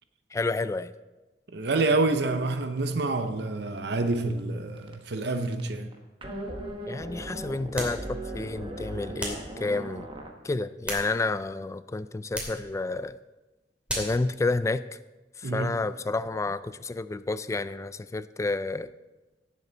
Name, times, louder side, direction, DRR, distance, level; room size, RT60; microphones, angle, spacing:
voice 1, 0.3-0.9 6.9-10.1 10.4-13.2 13.9-15.0 15.4-18.9, left 3 dB, 15° left, 0.3 m, -30 dB
voice 2, 1.5-5.9 15.4-15.8, right 3 dB, 70° right, 0.7 m, -27 dB
sound 1, 3.8-3.9 4.1-4.4 4.8-5.2 5.4-10.3, right 1 dB, 30° right, 1.2 m, -38 dB
sound 2, 7.7-8.1 9.2-9.5 10.6-11.5 12.3-12.6 13.9-14.2, equal, 5° right, 2.6 m, -34 dB
17.0 x 7.3 x 4.0 m
head